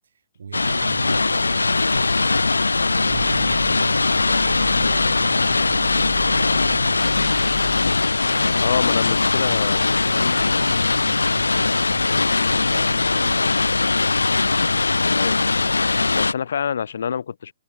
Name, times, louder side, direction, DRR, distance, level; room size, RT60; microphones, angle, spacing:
voice 1, 0.0-7.4 8.1-13.6, right 6 dB, 70° right, 3.9 m, -39 dB
sound 1, 0.5-16.3, left 3 dB, 90° left, 1.2 m, -20 dB
sound 2, 3.1-9.1, right 6 dB, 15° right, 2.7 m, -40 dB
voice 2, 8.6-9.8 15.1-15.5 16.1-17.5, left 7 dB, 65° left, 0.5 m, -26 dB
hypercardioid pair, 125°, 0 cm